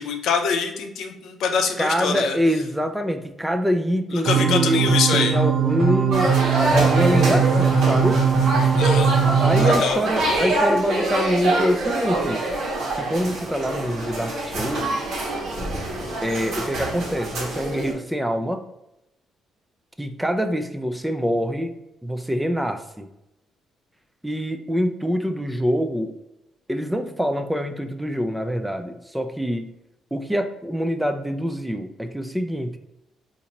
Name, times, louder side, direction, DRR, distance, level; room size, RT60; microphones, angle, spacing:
voice 1, 0.0-2.4 4.1-5.3 8.8-9.1 9.6-10.0, left 6 dB, 80° left, 5 dB, 0.5 m, -24 dB
voice 2, 1.8-4.8 5.1-8.2 9.4-12.4 13.0-14.9 16.2-18.6 20.0-21.7 22.0-23.1 24.2-26.2 26.7-29.7 30.1-32.8, equal, 5° right, 7 dB, 0.3 m, -25 dB
sound 1, 4.3-9.7, right 6 dB, 65° right, 0.8 m, -20 dB
sound 2, 6.1-17.9, right 2 dB, 85° right, 1.1 m, -25 dB
4.0 x 2.5 x 2.9 m, 0.90 s
cardioid pair, 90°, 0 cm